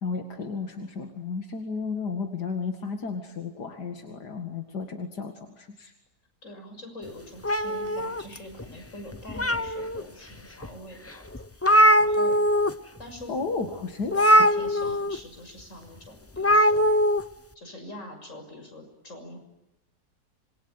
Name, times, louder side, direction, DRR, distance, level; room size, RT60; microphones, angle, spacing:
voice 1, 0.0-5.9 13.3-14.4, left 4 dB, 85° left, 4 dB, 2.6 m, -33 dB
voice 2, 6.4-11.7 12.0-12.4 13.0-16.9 17.5-19.4, left 1 dB, 50° left, 5 dB, 6.9 m, -44 dB
sound 1, 7.4-8.6 9.1-10.0 10.6-10.7 11.1-11.2 11.3-12.7 13.0-13.2 14.1-15.2 16.4-17.2, equal, 15° left, 0.5 m, -21 dB
27.0 x 23.0 x 9.1 m, 0.94 s
omnidirectional pair, 1.7 m